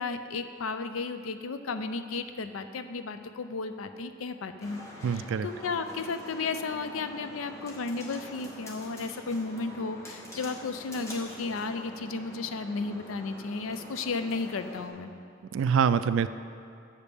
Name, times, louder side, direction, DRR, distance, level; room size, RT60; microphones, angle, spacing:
voice 1, 0.0-4.8 5.1-15.1, left 4 dB, 90° left, 9 dB, 0.5 m, -34 dB
sound 1, 4.6-14.9, equal, 15° left, 1.0 m, -45 dB
voice 2, 5.0-5.5 15.5-16.3, right 7 dB, 70° right, 13 dB, 0.3 m, -25 dB
7.2 x 5.2 x 6.7 m, 2.5 s
head